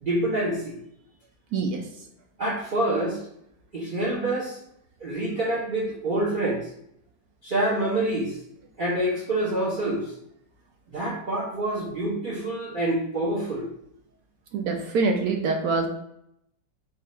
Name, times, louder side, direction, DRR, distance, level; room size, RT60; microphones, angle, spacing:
voice 1, 0.0-0.8 2.4-3.2 3.7-4.6 5.0-6.7 7.4-8.4 8.8-10.1 10.9-13.7, right 1 dB, 50° right, -6 dB, 0.6 m, -26 dB
voice 2, 1.5-1.8 14.5-15.9, right 4 dB, 70° right, 2 dB, 0.9 m, -25 dB
3.7 x 2.4 x 4.2 m, 0.74 s
omnidirectional pair, 2.0 m